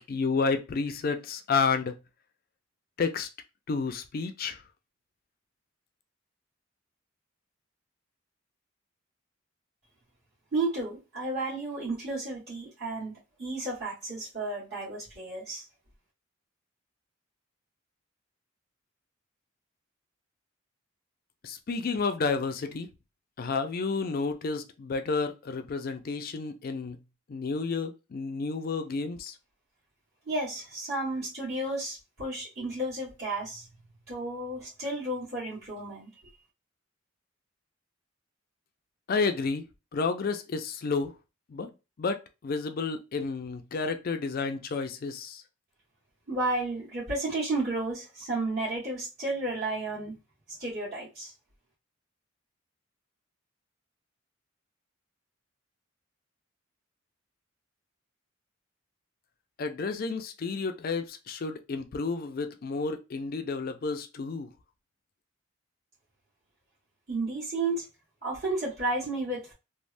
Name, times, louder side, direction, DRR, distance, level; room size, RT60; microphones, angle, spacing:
voice 1, 0.0-2.0 3.0-3.3 3.7-4.6 21.4-22.9 23.4-27.0 27.3-29.3 39.1-39.6 39.9-41.1 41.5-41.7 42.0-45.4 59.6-64.5, left 4 dB, 45° left, 0.4 m, -31 dB
voice 2, 10.5-13.1 13.4-15.7 30.3-33.7 34.1-36.1 46.3-50.1 50.6-51.3 67.1-67.8 68.2-69.5, right 2 dB, 55° right, 1.5 m, -32 dB
3.2 x 2.1 x 2.5 m
head